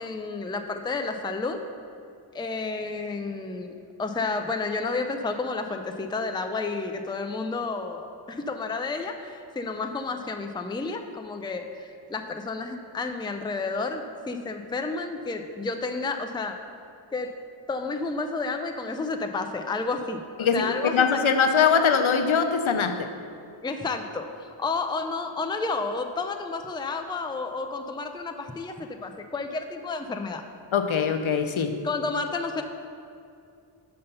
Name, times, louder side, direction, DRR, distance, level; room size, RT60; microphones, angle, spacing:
voice 1, 0.0-1.6 2.3-3.7 4.0-16.6 17.1-17.3 17.7-20.9 23.6-24.3 24.6-30.4 31.8-32.6, left 3 dB, 10° left, 5 dB, 0.4 m, -31 dB
voice 2, 20.4-23.1 30.7-31.8, left 6 dB, 80° left, 7 dB, 0.6 m, -22 dB
5.5 x 5.5 x 6.7 m, 2.4 s
wide cardioid pair, 45°, 48 cm